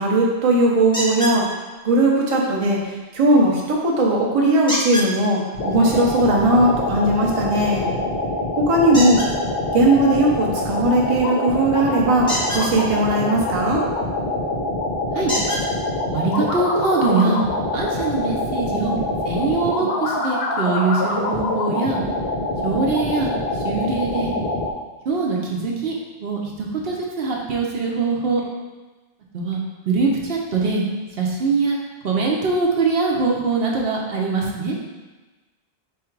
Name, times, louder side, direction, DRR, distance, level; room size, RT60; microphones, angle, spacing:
voice 1, 0.0-1.5 1.8-7.9 8.6-9.2 9.7-13.8, right 1 dB, 40° right, -2 dB, 0.7 m, -18 dB
sound 1, 0.9-1.4 4.7-5.1 8.9-9.3 12.2-12.7 14.3-14.4 15.3-15.6 16.6-16.7 17.2-17.3, equal, 5° left, 0.8 m, -25 dB
sound 2, 5.5-24.7, left 2 dB, 80° left, 1.0 m, -25 dB
voice 2, 16.1-17.4 17.7-18.9 19.2-22.0 22.6-23.3 23.6-24.3 25.1-28.4 29.3-29.6 29.9-30.8 31.2-31.8 32.0-34.8, right 4 dB, 70° right, -1 dB, 0.9 m, -22 dB
3.7 x 3.2 x 4.5 m, 1.2 s
omnidirectional pair, 1.1 m